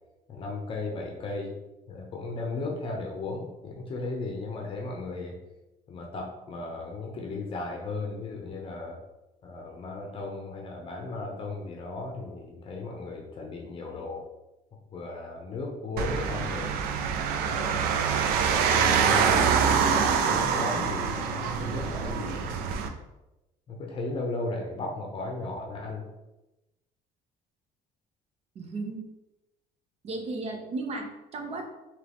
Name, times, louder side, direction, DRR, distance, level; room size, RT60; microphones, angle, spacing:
voice 1, 0.3-1.5 1.9-5.4 5.9-9.0 9.4-14.2 14.9-16.7 17.4-22.5 23.7-26.0, left 3 dB, 35° left, 1 dB, 0.7 m, -36 dB
sound 1, 16.0-22.9, right 6 dB, 90° right, 0.4 m, -25 dB
voice 2, 28.5-29.1 30.0-31.7, right 3 dB, 45° right, 4 dB, 0.7 m, -35 dB
3.7 x 3.0 x 3.4 m, 0.98 s
cardioid pair, 135°, 15 cm